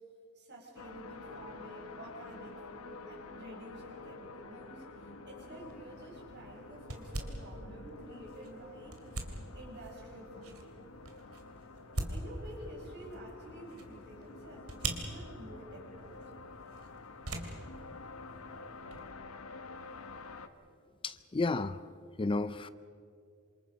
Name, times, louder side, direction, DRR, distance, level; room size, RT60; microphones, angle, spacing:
voice 1, 0.3-9.0 9.5-10.7 12.1-16.4, right 1 dB, 55° right, 6.2 m, -50 dB
sound 1, 0.8-20.5, left 3 dB, 85° left, 1.3 m, -50 dB
sound 2, 5.6-19.1, right 2 dB, 80° right, 2.9 m, -44 dB
voice 2, 21.0-21.8 22.2-22.7, left 3 dB, 25° left, 0.5 m, -32 dB
27.5 x 26.5 x 5.2 m
head